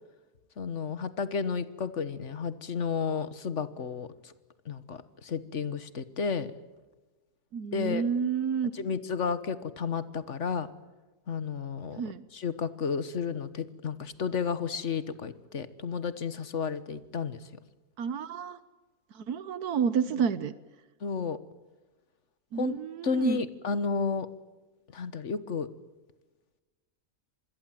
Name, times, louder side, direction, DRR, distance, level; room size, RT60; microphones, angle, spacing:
voice 1, 0.6-4.3 4.6-6.5 7.7-8.0 8.7-10.7 11.3-12.0 12.3-17.4 20.1-20.2 21.0-21.4 22.6-24.3 24.9-25.7, left 5 dB, 55° left, 14 dB, 1.5 m, -32 dB
voice 2, 7.5-8.7 12.0-12.2 18.0-18.6 19.1-20.5 22.5-23.4, right 7 dB, 85° right, 15 dB, 1.5 m, -29 dB
26.5 x 21.0 x 7.5 m, 1.2 s
omnidirectional pair, 1.6 m